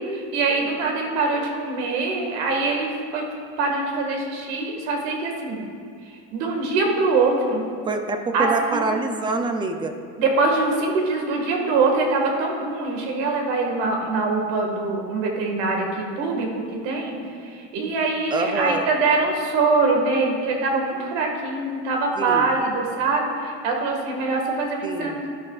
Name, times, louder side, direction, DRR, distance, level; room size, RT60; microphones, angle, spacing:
voice 1, 0.0-3.2 3.6-5.6 6.0-7.7 8.3-8.9 10.2-25.3, right 3 dB, 90° right, 1 dB, 1.8 m, -23 dB
voice 2, 7.9-10.0 18.3-18.9 22.2-22.6 24.8-25.2, right 3 dB, 15° right, 6 dB, 0.3 m, -26 dB
12.5 x 11.0 x 2.4 m, 2.3 s
cardioid pair, 165°, 32 cm